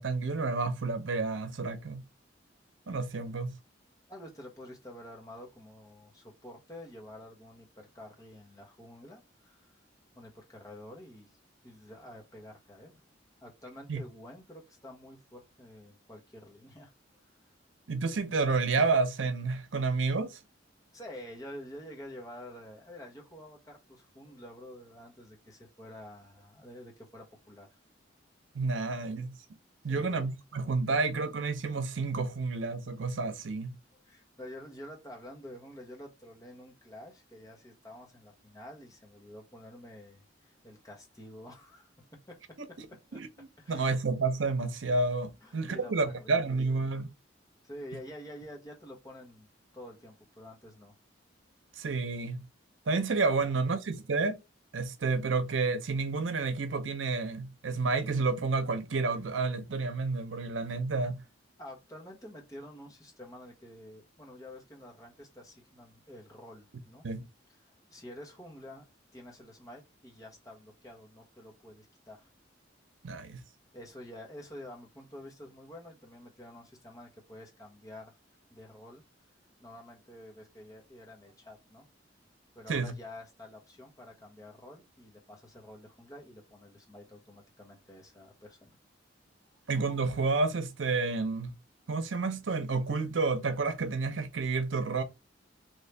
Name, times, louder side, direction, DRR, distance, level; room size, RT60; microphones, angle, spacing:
voice 1, 0.0-2.0 2.9-3.5 13.9-14.0 17.9-20.4 28.5-29.3 29.8-33.8 42.8-42.9 43.1-47.1 51.8-52.4 52.9-54.4 54.7-61.2 67.0-67.3 73.0-73.4 82.7-82.9 89.7-91.5 91.9-95.0, right 3 dB, 85° right, 0.7 m, -30 dB
voice 2, 4.1-9.7 10.1-11.3 11.6-13.0 13.4-16.9 20.9-27.7 29.8-30.2 33.9-41.9 42.3-42.6 43.1-43.2 43.6-44.0 45.4-46.5 47.6-49.5 49.7-50.9 53.4-53.6 61.6-67.1 67.6-68.9 69.1-72.3 73.7-78.1 78.5-79.0 79.6-81.9 82.5-88.8, left 1 dB, 20° left, 1.0 m, -49 dB
3.1 x 2.8 x 3.3 m
head